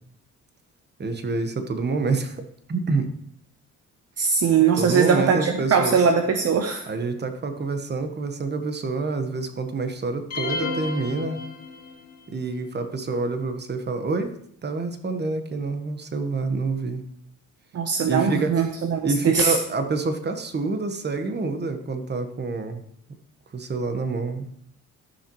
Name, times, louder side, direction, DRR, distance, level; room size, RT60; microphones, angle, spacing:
voice 1, 1.0-2.4 2.7-3.1 4.7-6.1 6.9-11.4 12.3-14.3 14.6-17.0 18.0-18.5 19.0-22.8 23.5-24.5, right 3 dB, 35° right, 7 dB, 1.2 m, -27 dB
voice 2, 4.2-6.8 17.7-19.6, right 6 dB, 55° right, 5 dB, 0.8 m, -21 dB
sound 1, 10.3-12.1, left 4 dB, 55° left, 2.5 m, -31 dB
14.0 x 5.8 x 3.1 m, 0.67 s
cardioid pair, 90°, 30 cm